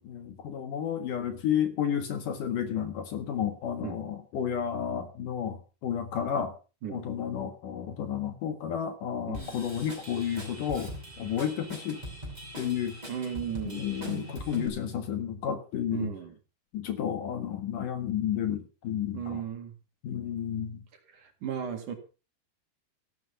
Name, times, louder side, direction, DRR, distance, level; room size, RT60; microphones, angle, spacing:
voice 1, 0.0-6.5 6.9-12.0 12.6-13.0 13.6-16.1 16.7-19.4 20.0-20.8, left 9 dB, 60° left, 9 dB, 2.8 m, -32 dB
Drum kit / Drum, 9.3-14.7, equal, 10° right, 5.4 m, -41 dB
voice 2, 13.1-13.9 15.9-16.3 19.1-19.7 21.1-21.9, right 8 dB, 55° right, 7 dB, 3.2 m, -35 dB
14.5 x 12.0 x 5.4 m, 0.34 s
omnidirectional pair, 4.7 m